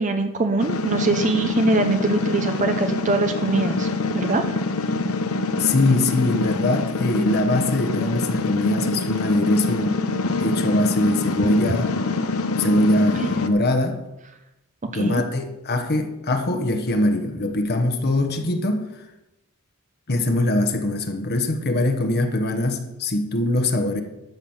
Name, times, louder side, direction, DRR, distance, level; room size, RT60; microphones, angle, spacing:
voice 1, 0.0-4.4 14.9-15.2, right 3 dB, 35° right, 6 dB, 0.7 m, -23 dB
sound 1, 0.6-13.5, left 3 dB, 70° left, 0.8 m, -25 dB
voice 2, 5.6-10.1 10.4-11.9 12.6-14.0 14.9-18.9 20.1-24.0, left 1 dB, 50° left, 6 dB, 1.2 m, -22 dB
12.5 x 6.0 x 7.2 m, 0.96 s
head